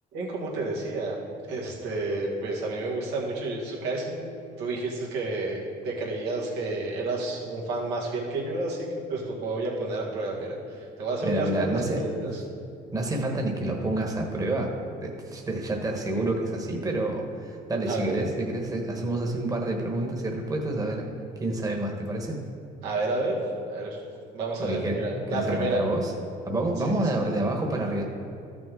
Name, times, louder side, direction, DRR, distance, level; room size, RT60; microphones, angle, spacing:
voice 1, 0.1-1.1 1.5-5.6 5.8-8.8 9.1-10.6 11.0-12.4 17.9-18.2 22.8-24.0 24.3-25.8 27.0-27.2, right 2 dB, 90° right, -3 dB, 1.9 m, -30 dB
voice 2, 11.2-12.3 12.9-14.7 15.0-21.1 21.4-22.4 24.6-26.1 26.4-28.0, right 1 dB, 20° right, 1 dB, 1.2 m, -28 dB
13.0 x 6.1 x 3.7 m, 2.5 s
cardioid pair, 110°, 17 cm